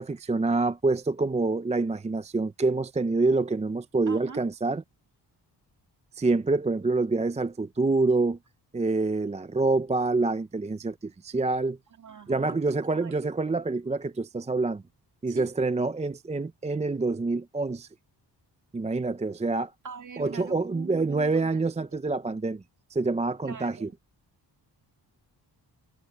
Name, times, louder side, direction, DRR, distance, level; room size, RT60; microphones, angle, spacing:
voice 1, 0.0-4.8 6.2-8.4 8.7-11.8 12.3-14.8 15.2-17.9 18.7-19.7 20.2-22.6 22.9-23.9, right 3 dB, 15° right, 0.5 m, -26 dB
voice 2, 4.1-4.4 12.0-13.2 15.3-15.5 19.8-22.0 23.4-23.9, right 6 dB, 45° right, 2.0 m, -43 dB
wide cardioid pair, 145°, 42 cm